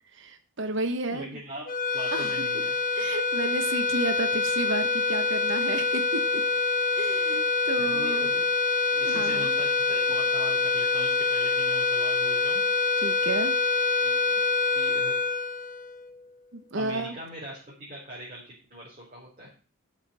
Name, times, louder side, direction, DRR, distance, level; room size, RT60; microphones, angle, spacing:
voice 1, 0.1-1.4 2.1-2.3 2.9-6.2 7.0-8.3 9.0-9.5 13.0-13.5 16.5-17.2, right 2 dB, 60° right, 9 dB, 1.0 m, -32 dB
voice 2, 1.1-1.7 1.9-2.8 7.8-8.4 8.9-12.6 14.0-14.4 14.7-15.1 16.7-19.5, right 1 dB, 35° right, -6 dB, 3.5 m, -41 dB
sound 1, 1.7-16.2, left 4 dB, 40° left, 0.9 m, -26 dB
11.5 x 5.8 x 5.4 m, 0.36 s
head